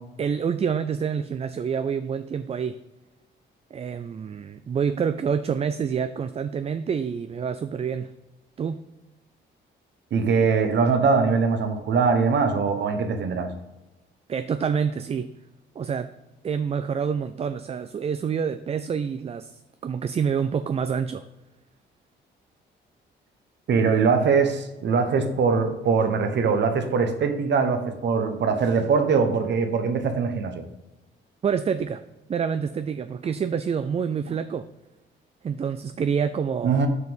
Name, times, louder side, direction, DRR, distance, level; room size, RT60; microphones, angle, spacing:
voice 1, 0.2-2.8 3.7-8.1 8.6-8.8 14.3-15.3 15.8-16.1 16.4-21.2 31.4-32.0 32.3-34.6 35.4-36.8, right 7 dB, 30° right, 11 dB, 0.4 m, -27 dB
voice 2, 10.1-13.5 23.7-30.6 36.6-36.9, right 5 dB, 60° right, 7 dB, 1.2 m, -22 dB
6.5 x 5.2 x 5.3 m, 1.0 s
cardioid pair, 90°, 20 cm